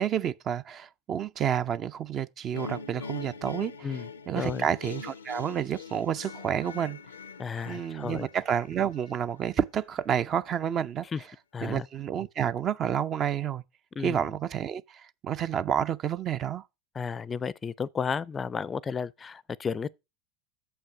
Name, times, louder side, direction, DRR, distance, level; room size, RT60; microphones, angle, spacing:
voice 1, 0.0-7.0 7.7-11.3 11.6-13.6 14.0-16.6, right 9 dB, 40° right, 0.5 m, -30 dB
sound 1, 2.5-9.6, left 5 dB, 85° left, 0.5 m, -42 dB
voice 2, 4.4-4.7 7.4-8.2 11.1-11.2 11.5-11.8 14.0-14.2 17.0-19.9, left 6 dB, 25° left, 0.4 m, -33 dB
6.9 x 5.6 x 5.9 m
hypercardioid pair, 80°, 0 cm